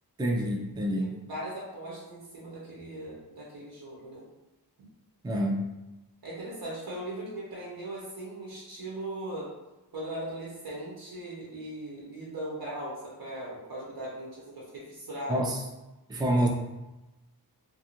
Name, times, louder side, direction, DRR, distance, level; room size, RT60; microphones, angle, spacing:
voice 1, 0.2-1.1 5.2-5.7 15.3-15.6 16.1-16.5, right 1 dB, 10° right, 0 dB, 0.3 m, -27 dB
voice 2, 1.0-4.3 6.2-9.5 9.9-15.5, right 1 dB, 70° right, -6 dB, 0.8 m, -39 dB
2.5 x 2.3 x 2.9 m, 1.0 s
wide cardioid pair, 90°, 39 cm